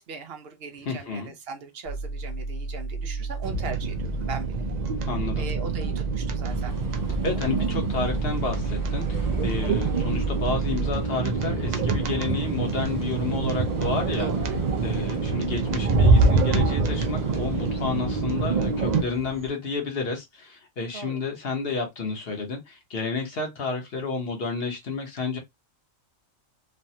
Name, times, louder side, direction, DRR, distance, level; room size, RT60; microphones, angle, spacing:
voice 1, 0.0-4.6 5.4-6.7 14.2-14.6 20.9-21.2, right 4 dB, 60° right, 0.8 m, -39 dB
voice 2, 0.8-1.3 5.1-5.5 7.2-14.3 14.8-25.4, left 4 dB, 50° left, 1.1 m, -30 dB
sound 1, 1.8-10.9, right 4 dB, 85° left, 1.4 m, -31 dB
sound 2, 3.4-19.0, right 3 dB, 75° right, 0.4 m, -26 dB
Bus, 6.5-19.5, equal, 20° right, 0.6 m, -40 dB
3.2 x 2.2 x 2.7 m
omnidirectional pair, 1.4 m